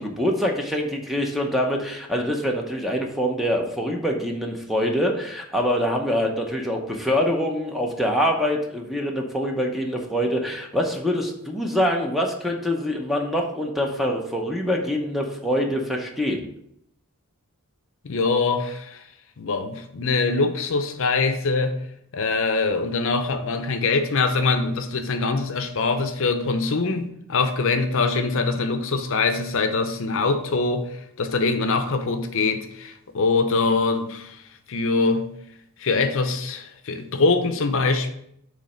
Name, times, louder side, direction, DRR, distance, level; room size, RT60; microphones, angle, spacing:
voice 1, 0.0-16.5, equal, ahead, 0.8 m, -25 dB
voice 2, 18.0-19.0 19.4-21.8 22.1-34.4 34.7-35.3 35.8-38.1, left 3 dB, 60° left, 0.6 m, -23 dB
7.2 x 3.2 x 5.1 m
head